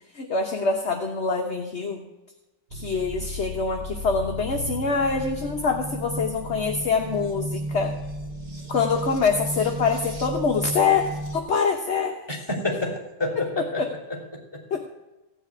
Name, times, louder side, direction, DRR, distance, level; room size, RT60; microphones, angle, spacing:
voice 1, 0.1-2.0 2.7-7.9 8.7-12.2 14.7-14.8, left 5 dB, 40° left, 2 dB, 1.1 m, -25 dB
sound 1, 2.7-11.4, right 1 dB, 25° right, 1.4 m, -34 dB
voice 2, 12.3-14.6, left 2 dB, 10° left, -2 dB, 3.2 m, -29 dB
15.5 x 5.8 x 9.6 m, 1.1 s
omnidirectional pair, 2.1 m